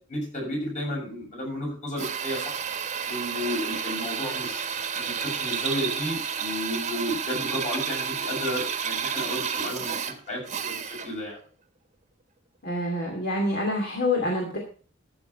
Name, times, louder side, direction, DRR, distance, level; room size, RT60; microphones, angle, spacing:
voice 1, 0.1-2.6 3.1-4.7 4.9-11.4, equal, 40° left, -1 dB, 6.9 m, -32 dB
Drill, 2.0-11.2, right 7 dB, 40° right, 1.2 m, -31 dB
voice 2, 12.6-14.6, left 1 dB, 55° left, 0 dB, 2.5 m, -26 dB
13.5 x 6.8 x 5.6 m, 0.43 s
head